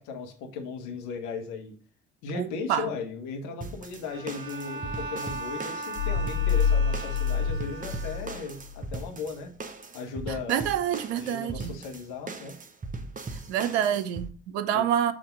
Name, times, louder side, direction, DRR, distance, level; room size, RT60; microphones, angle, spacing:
voice 1, 0.0-1.8 2.2-9.5 9.9-10.6 11.1-12.6 14.7-14.9, left 4 dB, 65° left, 1.2 m, -37 dB
voice 2, 2.3-2.9 10.5-11.8 13.5-15.1, right 10 dB, 70° right, 0.6 m, -27 dB
sound 1, 3.6-14.3, right 3 dB, 25° right, 0.9 m, -39 dB
Bowed string instrument, 4.1-8.7, right 2 dB, 40° right, 1.7 m, -38 dB
sound 2, 6.0-8.9, left 6 dB, 40° left, 0.4 m, -27 dB
7.3 x 2.7 x 5.3 m
figure-of-eight pair, 45°, 33 cm